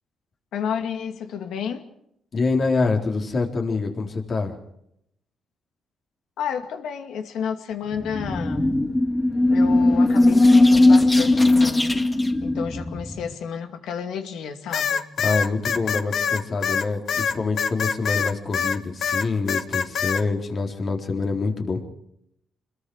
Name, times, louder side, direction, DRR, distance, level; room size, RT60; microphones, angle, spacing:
voice 1, 0.5-1.8 6.4-8.9 9.5-12.1 12.4-15.1, left 7 dB, 85° left, 2.4 m, -31 dB
voice 2, 2.3-4.5 15.2-21.8, left 3 dB, 45° left, 3.8 m, -25 dB
sound 1, 7.9-13.3, left 2 dB, 15° left, 1.9 m, -18 dB
sound 2, 14.7-18.8 19.0-20.2, left 7 dB, 60° left, 1.2 m, -24 dB
27.5 x 22.0 x 4.9 m
cardioid pair, 115°, 0 cm